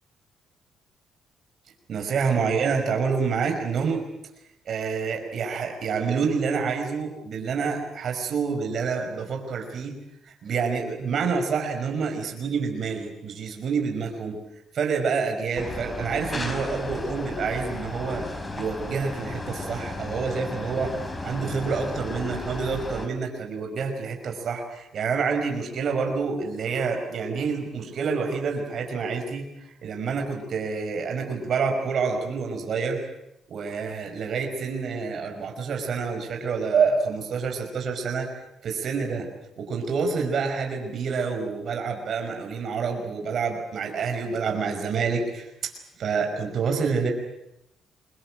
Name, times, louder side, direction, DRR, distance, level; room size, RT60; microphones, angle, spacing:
voice 1, 1.9-4.0 4.7-9.9 10.3-14.4 14.7-18.3 18.5-29.4 29.8-33.1 33.5-38.3 38.6-39.3 39.6-45.7 46.0-47.1, right 5 dB, 60° right, 3 dB, 5.4 m, -27 dB
sound 1, 15.6-23.1, left 2 dB, 20° left, 4.5 m, -34 dB
24.5 x 21.0 x 8.8 m, 0.83 s
cardioid pair, 90°, 0 cm